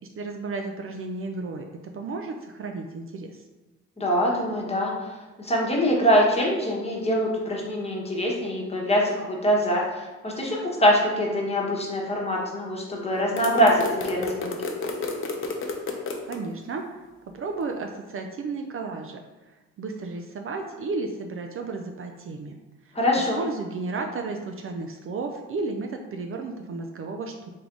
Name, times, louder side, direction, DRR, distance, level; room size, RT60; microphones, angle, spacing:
voice 1, 0.1-1.7 1.9-3.4 16.3-16.8 17.3-19.2 19.5-22.5 22.8-23.0 23.3-27.5, right 3 dB, 45° right, 3 dB, 0.4 m, -33 dB
voice 2, 4.0-14.6 22.9-23.4, equal, 20° left, -3 dB, 1.1 m, -24 dB
sound 1, 13.4-16.4, left 3 dB, 40° left, 0.7 m, -31 dB
3.5 x 3.3 x 3.8 m, 1.2 s
cardioid pair, 90°, 30 cm